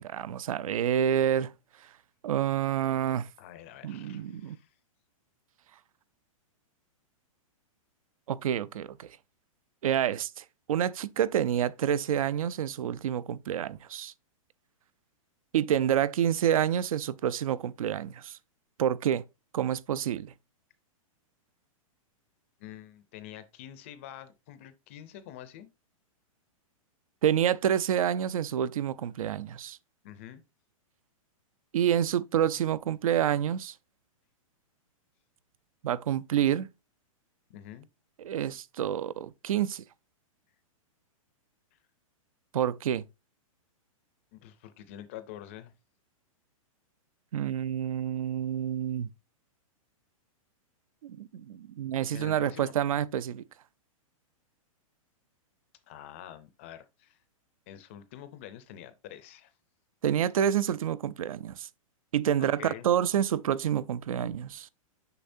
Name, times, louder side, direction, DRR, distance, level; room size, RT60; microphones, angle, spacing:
voice 1, 0.0-1.5 2.2-3.3 3.8-4.6 8.3-9.1 9.8-14.1 15.5-18.4 18.8-19.2 19.5-20.3 27.2-29.8 31.7-33.7 35.8-36.7 38.2-39.8 42.5-43.0 47.3-49.1 51.0-53.4 60.0-61.7 62.1-64.7, right 10 dB, 75° right, 0.5 m, -28 dB
voice 2, 3.4-4.7 22.6-25.7 30.0-30.4 37.5-37.9 44.3-45.7 52.1-52.7 55.9-57.2 57.7-59.5 62.4-62.9, left 11 dB, 25° left, 0.4 m, -46 dB
6.8 x 5.7 x 2.6 m
hypercardioid pair, 175°, 18 cm